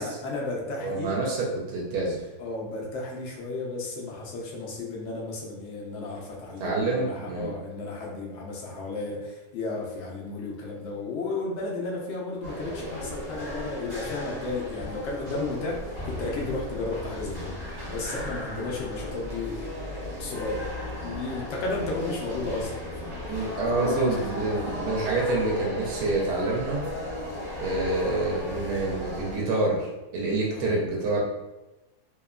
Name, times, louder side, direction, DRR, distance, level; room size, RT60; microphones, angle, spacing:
voice 1, 0.0-1.2 2.4-17.6 17.9-19.7 20.2-20.7 21.0-23.5 23.8-24.4 30.5-30.7, left 3 dB, 75° left, -2 dB, 0.6 m, -33 dB
voice 2, 0.8-2.2 6.6-7.5 23.3-26.8 27.6-31.2, right 2 dB, 75° right, -3 dB, 1.1 m, -27 dB
sound 1, 12.4-29.4, left 1 dB, 30° right, 0.7 m, -36 dB
2.8 x 2.1 x 2.3 m, 1.0 s
omnidirectional pair, 1.7 m